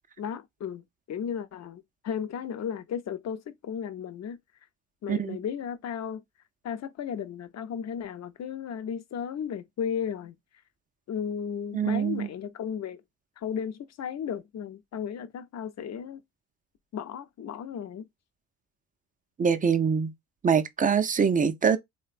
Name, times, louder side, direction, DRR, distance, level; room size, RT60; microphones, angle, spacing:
voice 1, 0.2-4.4 5.0-6.2 6.6-10.3 11.1-13.0 13.4-16.2 16.9-18.1, left 8 dB, 45° left, 0.6 m, -35 dB
voice 2, 11.7-12.3 19.4-20.1 20.4-21.8, right 6 dB, 25° right, 0.4 m, -24 dB
3.1 x 2.1 x 2.4 m
supercardioid pair, 60°, 38 cm